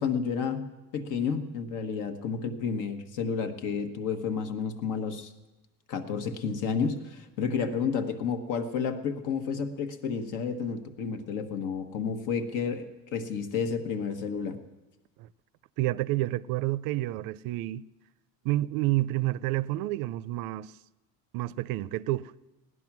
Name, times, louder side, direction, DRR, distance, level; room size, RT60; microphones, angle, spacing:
voice 1, 0.0-5.3 5.9-14.6, left 6 dB, 60° left, 1.2 m, -31 dB
voice 2, 15.8-17.9 18.4-20.7 21.3-22.3, right 16 dB, 75° right, 0.5 m, -29 dB
17.0 x 11.0 x 6.0 m
cardioid pair, 180°, 35 cm